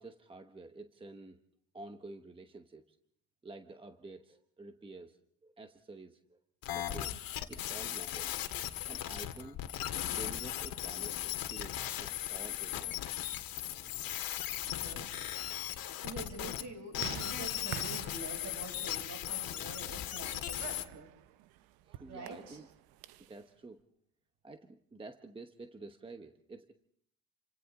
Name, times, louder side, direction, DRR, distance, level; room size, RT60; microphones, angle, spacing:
voice 1, 0.0-1.4 1.7-3.0 3.4-5.2 5.4-6.4 6.7-7.2 7.5-8.4 8.9-9.6 10.1-13.1 21.8-22.7 23.3-23.8 24.4-26.7, right 3 dB, 15° right, 6 dB, 1.0 m, -50 dB
sound 1, 6.6-16.6 16.9-20.8, left 12 dB, 75° left, 2.0 m, -38 dB
sound 2, 14.3-23.4, right 14 dB, 90° right, 0.8 m, -49 dB
voice 2, 14.6-21.1 22.1-22.6, right 2 dB, 50° right, 4 dB, 6.9 m, -47 dB
29.0 x 25.5 x 3.7 m, 0.66 s
cardioid pair, 130°, 35 cm